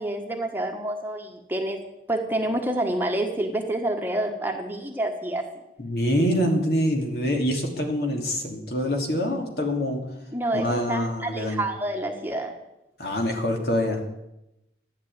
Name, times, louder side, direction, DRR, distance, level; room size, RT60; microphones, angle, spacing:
voice 1, 0.0-1.8 2.1-5.4 10.3-12.5, right 1 dB, 10° right, 2 dB, 1.4 m, -28 dB
voice 2, 5.8-10.0 10.5-11.6 13.0-14.0, equal, 60° left, 2 dB, 2.9 m, -25 dB
13.5 x 10.0 x 8.8 m, 0.90 s
head